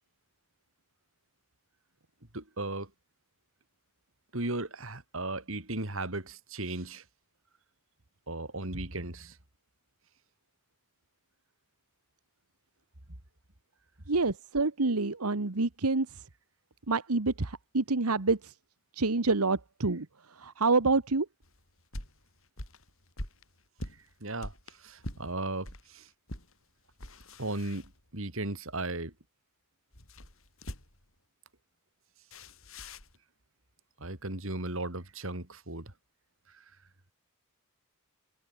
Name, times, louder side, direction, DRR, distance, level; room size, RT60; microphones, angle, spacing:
voice 1, 2.3-2.9 4.3-7.1 8.3-9.4 13.1-13.2 24.2-26.1 27.4-29.1 34.0-35.9 36.5-36.7, right 2 dB, 60° right, 3.3 m, -36 dB
voice 2, 14.1-16.3 16.9-18.6 18.9-21.3, right 3 dB, 85° right, 1.4 m, -28 dB
sound 1, 21.4-25.9 26.3-26.5 26.9-28.4 29.9-31.1 32.3-33.2, left 1 dB, 65° left, 7.5 m, -44 dB
head